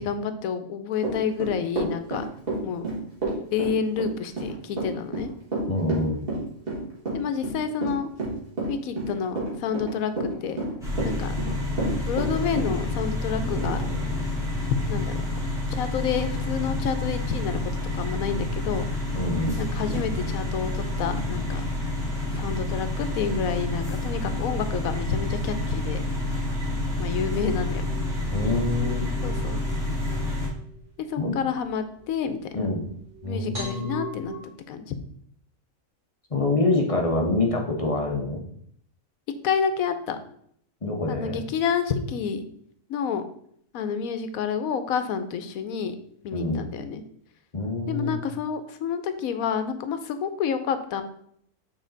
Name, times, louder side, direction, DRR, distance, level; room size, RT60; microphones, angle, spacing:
voice 1, 0.0-2.3 2.6-2.8 3.5-5.3 7.1-8.1 8.7-10.6 11.0-11.3 12.1-13.8 14.9-15.2 15.8-17.6 17.9-19.0 19.6-21.7 22.4-26.0 27.0-27.8 29.2-29.6 31.1-32.4 33.2-34.3 34.7-34.9 39.4-40.2 41.1-42.4 42.9-43.2 43.7-46.0 46.2-47.0 47.9-51.0, left 6 dB, 85° left, 10 dB, 1.1 m, -29 dB
Run / Walk footsteps, 1.0-12.7, right 2 dB, 40° right, 2.1 m, -29 dB
voice 2, 5.7-6.2 19.1-19.6 28.3-29.1 31.2-31.3 32.5-32.8 33.2-34.0 36.3-38.4 40.8-41.4 46.3-46.6 47.5-48.2, left 2 dB, 30° left, 1 dB, 0.9 m, -26 dB
sound 1, 10.8-30.5, left 1 dB, ahead, 2.2 m, -28 dB
sound 2, 27.9-34.4, right 2 dB, 60° right, 2.2 m, -43 dB
6.3 x 4.1 x 3.9 m, 0.67 s
omnidirectional pair, 1.4 m